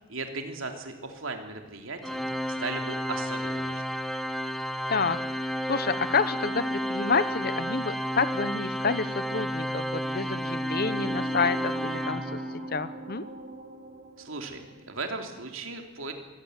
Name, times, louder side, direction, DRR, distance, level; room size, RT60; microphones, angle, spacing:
voice 1, 0.1-2.2 2.6-3.8 14.2-14.6 14.9-16.1, right 3 dB, 70° right, 4 dB, 3.2 m, -36 dB
Organ, 2.0-12.8, equal, ahead, 0.8 m, -31 dB
voice 2, 4.9-13.2, left 4 dB, 45° left, 13 dB, 1.1 m, -29 dB
sound 1, 10.0-15.3, right 2 dB, 45° right, 3.5 m, -42 dB
23.5 x 16.5 x 9.3 m, 1.2 s
head